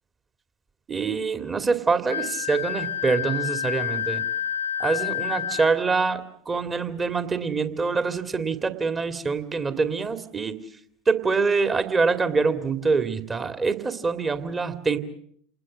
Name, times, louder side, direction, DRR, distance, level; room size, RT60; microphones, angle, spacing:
voice 1, 0.9-4.2 4.8-10.6 11.1-15.0, right 4 dB, 25° right, 9 dB, 2.2 m, -25 dB
Wind instrument woodwind instrument, 2.1-5.8, left 9 dB, 80° left, 1.4 m, -29 dB
28.5 x 20.5 x 7.4 m, 0.65 s
figure-of-eight pair, 70°, 0 cm